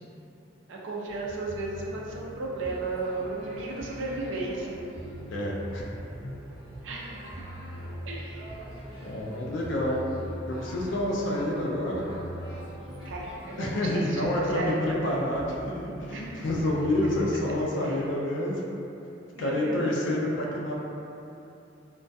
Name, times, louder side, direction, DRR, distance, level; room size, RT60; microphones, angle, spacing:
voice 1, 0.7-4.8 6.8-7.2 8.1-8.4 13.1-14.8 16.1-16.4 19.3-19.8, right 2 dB, 70° right, -3 dB, 0.4 m, -34 dB
sound 1, 1.1-17.4, equal, 30° right, 0.8 m, -41 dB
voice 2, 5.3-5.8 6.2-6.3 9.0-10.0 10.5-12.0 13.6-18.6 19.4-20.8, left 1 dB, 70° left, -3 dB, 0.3 m, -28 dB
2.3 x 2.2 x 2.5 m, 2.8 s
head